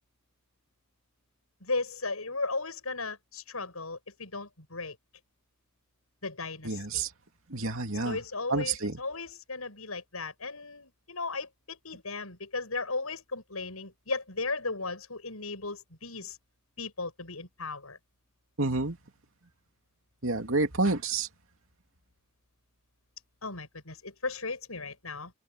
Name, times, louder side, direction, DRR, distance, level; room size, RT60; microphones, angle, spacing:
voice 1, 1.6-5.0 6.2-7.0 8.0-16.4 16.8-18.0 23.4-25.3, left 3 dB, 85° left, 7.9 m, -36 dB
voice 2, 6.6-7.1 7.5-8.2 8.5-9.0 18.6-19.0 20.2-21.3, right 3 dB, 70° right, 2.6 m, -29 dB
head